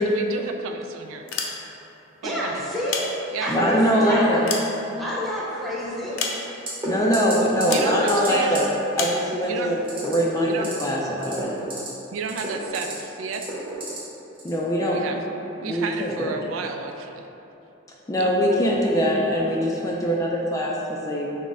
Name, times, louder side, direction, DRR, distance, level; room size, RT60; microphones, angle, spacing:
voice 1, 0.0-1.3 2.2-2.7 3.3-4.1 7.4-8.5 9.4-9.8 10.4-10.7 12.1-13.5 14.9-15.2 15.6-17.3 18.2-18.3, right 5 dB, 80° right, 6 dB, 0.3 m, -32 dB
sound 1, 1.2-2.0 2.7-3.7 4.1-5.4 6.2-6.8 7.7-8.0 8.9-9.3, left 5 dB, 80° left, 0.5 m, -30 dB
voice 2, 2.2-3.0 3.4-4.6 5.0-6.2, left 1 dB, ahead, -8 dB, 0.7 m, -29 dB
voice 3, 3.5-4.5 6.9-8.7 9.0-9.8 10.0-11.5 14.4-15.0 15.6-16.3 18.1-21.3, equal, 15° left, -3 dB, 0.3 m, -22 dB
sound 2, 6.7-6.9 7.1-7.3 7.6-8.3 8.5-8.6 9.8-10.1 10.5-10.8 11.2-11.9 12.2-12.9 13.3-14.0 14.4-14.6, right 2 dB, 25° right, 1.0 m, -31 dB
6.2 x 2.1 x 3.5 m, 3.0 s
head